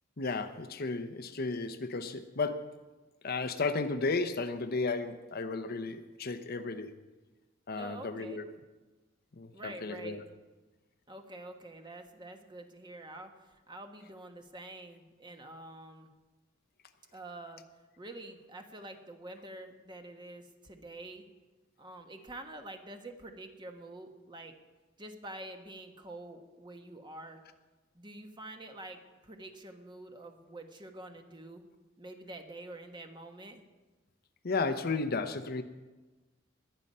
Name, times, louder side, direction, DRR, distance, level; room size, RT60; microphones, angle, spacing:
voice 1, 0.2-2.8 3.2-6.9 7.7-8.5 9.4-10.2 34.4-35.6, left 3 dB, 50° left, 9 dB, 0.8 m, -34 dB
voice 2, 7.8-8.5 9.5-10.2 11.1-16.1 17.1-17.6 18.0-21.3 21.8-24.5 25.0-27.4 27.9-31.7 32.0-33.6, right 2 dB, 25° right, 5 dB, 1.3 m, -47 dB
21.0 x 8.9 x 5.5 m, 1.2 s
head